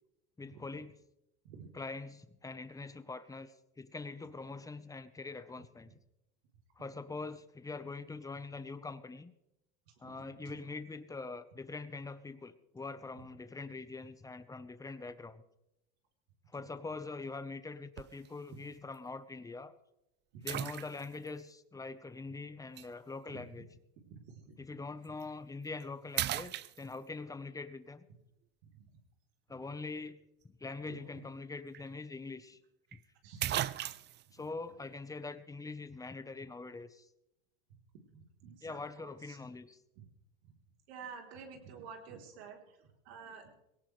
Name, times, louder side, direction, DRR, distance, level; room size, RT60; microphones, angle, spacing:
voice 1, 0.4-1.0 1.7-5.9 6.8-9.3 10.0-15.4 16.5-19.7 20.4-23.7 24.6-28.0 29.5-30.2 30.4-32.6 32.9-33.0 34.3-37.1 38.6-39.8, left 3 dB, 10° left, 12 dB, 1.0 m, -43 dB
sound 1, 18.0-18.3 18.9-19.0 20.5-21.3 22.8-22.9 25.0-25.2 25.7-25.8 26.2-27.2 31.4-31.5 31.7-31.8 32.9-33.0 33.4-34.3, right 13 dB, 35° right, 0.5 m, -36 dB
voice 2, 24.1-24.5 28.7-28.8 30.9-31.0 33.2-33.4 34.3-34.4 38.1-39.4 40.0-40.1 40.4-40.5 40.9-42.6 43.1-43.5, right 6 dB, 80° right, 2 dB, 3.8 m, -50 dB
18.5 x 17.5 x 3.3 m, 0.87 s
supercardioid pair, 115°, 32 cm